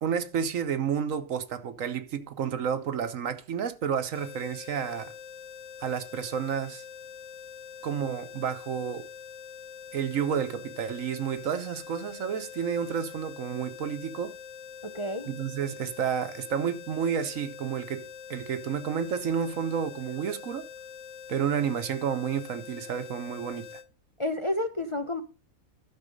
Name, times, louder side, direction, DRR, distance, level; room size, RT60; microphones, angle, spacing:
voice 1, 0.0-5.1 5.8-6.8 7.8-9.1 9.9-14.4 15.3-20.7 21.3-23.8, right 7 dB, 70° right, 1.3 m, -30 dB
sound 1, 4.1-23.9, left 7 dB, 65° left, 1.0 m, -45 dB
voice 2, 14.8-15.3 24.2-25.2, left 1 dB, 25° left, 0.7 m, -30 dB
12.0 x 6.4 x 5.2 m
omnidirectional pair, 1.5 m